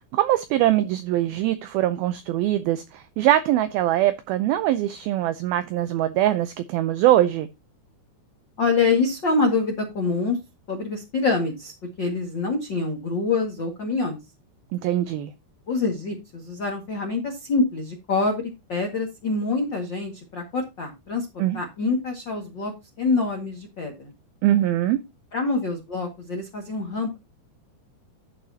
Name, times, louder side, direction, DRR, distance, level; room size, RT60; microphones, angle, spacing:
voice 1, 0.1-7.5 14.7-15.3 21.4-21.6 24.4-25.0, right 13 dB, 85° right, 2.1 m, -22 dB
voice 2, 8.6-10.4 10.7-11.7 12.0-14.2 15.7-22.7 23.0-24.1 25.3-27.2, left 3 dB, 45° left, 1.5 m, -25 dB
11.5 x 8.8 x 2.8 m
omnidirectional pair, 5.1 m